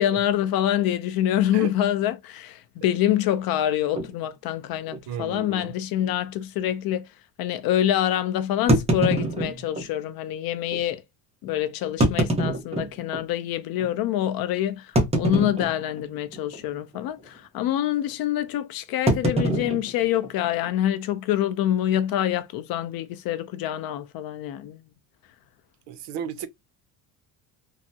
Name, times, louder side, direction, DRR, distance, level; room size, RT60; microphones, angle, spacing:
voice 1, 0.0-7.1 7.4-11.0 11.4-14.9 15.2-24.8, left 12 dB, 55° left, 0.4 m, -26 dB
sound 1, 4.0-4.1 4.9-5.0 5.3-5.4 6.0-6.1 8.7-9.9 10.7-10.8 11.8-13.3 13.8-13.9 15.0-16.0 16.3-16.7 16.9-17.3 19.1-20.7, right 1 dB, 15° right, 0.7 m, -24 dB
voice 2, 5.1-5.7 25.9-26.5, right 8 dB, 65° right, 0.6 m, -34 dB
3.4 x 2.0 x 2.6 m
cardioid pair, 145°, 45 cm